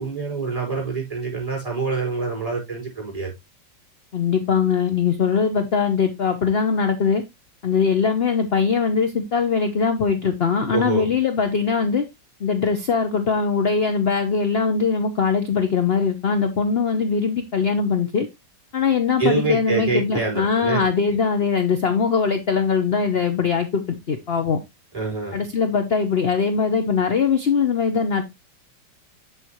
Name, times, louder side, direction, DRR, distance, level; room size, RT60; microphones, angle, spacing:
voice 1, 0.0-3.3 10.7-11.1 19.2-20.9 24.9-25.4, right 4 dB, 20° right, 4.6 m, -25 dB
voice 2, 4.1-7.2 7.6-12.0 12.4-18.3 18.7-24.6 25.3-28.2, left 5 dB, 45° left, 0.9 m, -21 dB
8.4 x 6.8 x 2.9 m
omnidirectional pair, 2.0 m